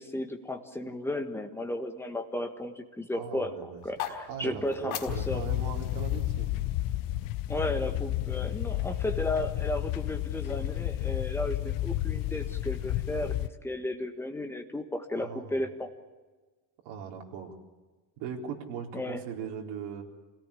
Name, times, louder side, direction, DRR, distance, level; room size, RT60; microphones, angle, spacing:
voice 1, 0.0-5.4 7.5-15.9 18.9-19.2, left 1 dB, 5° left, 5 dB, 1.6 m, -34 dB
voice 2, 3.1-3.8 4.3-6.6 15.1-15.6 16.8-17.6 18.2-20.0, right 7 dB, 60° right, 1 dB, 4.2 m, -39 dB
sound 1, 3.8-7.9, left 10 dB, 75° left, 4.5 m, -42 dB
sound 2, 5.1-13.5, left 14 dB, 45° left, 0.7 m, -31 dB
27.5 x 17.5 x 8.5 m, 1.3 s
cardioid pair, 165°, 47 cm